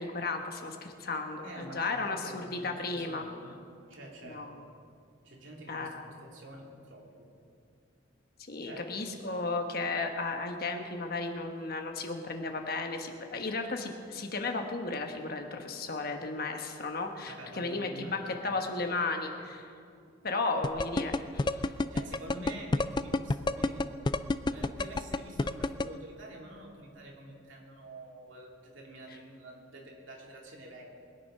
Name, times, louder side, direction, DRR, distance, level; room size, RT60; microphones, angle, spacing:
voice 1, 0.0-3.2 4.2-4.5 5.7-6.1 8.5-19.7 20.2-21.7, left 3 dB, 50° left, 4 dB, 1.2 m, -34 dB
voice 2, 1.4-3.6 3.9-4.5 5.2-7.3 8.6-8.8 17.3-18.9 21.9-23.9 24.5-30.8, right 1 dB, 70° right, -1 dB, 2.6 m, -47 dB
sound 1, 20.6-25.8, left 2 dB, 20° left, 0.3 m, -27 dB
21.5 x 9.2 x 5.7 m, 2.4 s
head